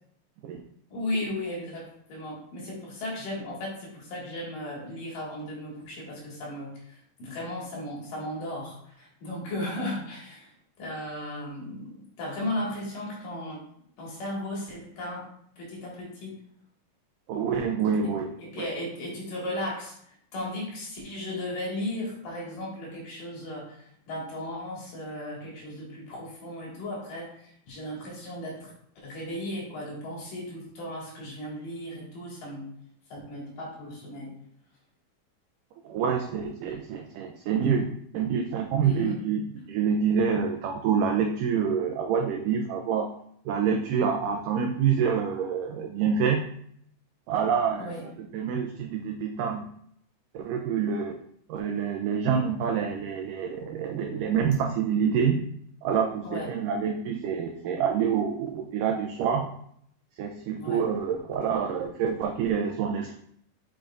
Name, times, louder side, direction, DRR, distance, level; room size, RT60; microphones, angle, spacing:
voice 1, 0.9-6.7 7.2-10.5 10.8-13.6 14.0-15.3 15.6-16.4 18.4-20.0 20.3-32.7 33.1-34.4 38.8-39.2 47.8-48.0 56.2-56.5 60.6-60.8, left 1 dB, 65° left, -4 dB, 3.4 m, -36 dB
voice 2, 17.3-18.3 18.6-18.7 35.8-43.1 43.5-46.4 47.3-49.7 50.3-51.2 51.5-55.4 55.8-59.5 60.2-63.2, right 7 dB, 85° right, 3 dB, 1.9 m, -27 dB
7.0 x 5.9 x 2.5 m, 0.67 s
omnidirectional pair, 4.4 m